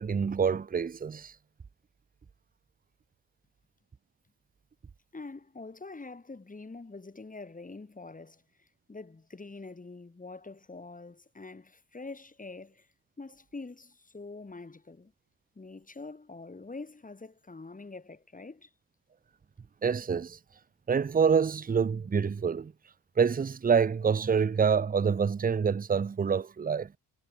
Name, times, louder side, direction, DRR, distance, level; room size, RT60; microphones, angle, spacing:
voice 1, 0.0-1.3 19.8-20.4 20.9-22.7 23.2-26.9, right 6 dB, 20° right, 0.7 m, -26 dB
voice 2, 5.1-12.9 13.2-15.1 15.6-18.7, left 3 dB, 20° left, 6.9 m, -45 dB
cardioid pair, 130°, 43 cm